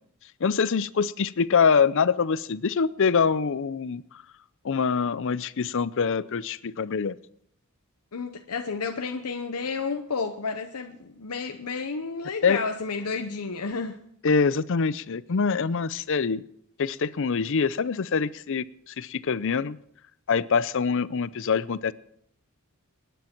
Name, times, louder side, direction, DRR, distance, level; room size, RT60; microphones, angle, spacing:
voice 1, 0.4-4.0 4.6-7.2 12.4-12.6 14.2-16.4 16.8-19.8 20.3-21.9, left 5 dB, 60° left, 0.5 m, -24 dB
voice 2, 8.1-14.0, left 4 dB, 85° left, 0.9 m, -31 dB
24.5 x 10.5 x 4.5 m
head